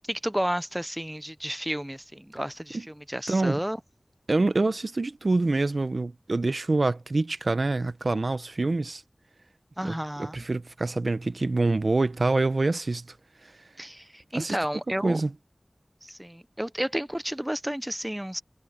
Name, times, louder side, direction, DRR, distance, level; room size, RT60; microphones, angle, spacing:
voice 1, 0.1-3.8 9.8-10.4 13.8-15.2 16.0-18.4, equal, 10° right, 0.7 m, -31 dB
voice 2, 3.3-3.6 4.3-9.0 9.8-13.1 14.3-14.6 15.0-15.3, right 2 dB, 75° right, 0.8 m, -26 dB
wide cardioid pair, 50°, 0 cm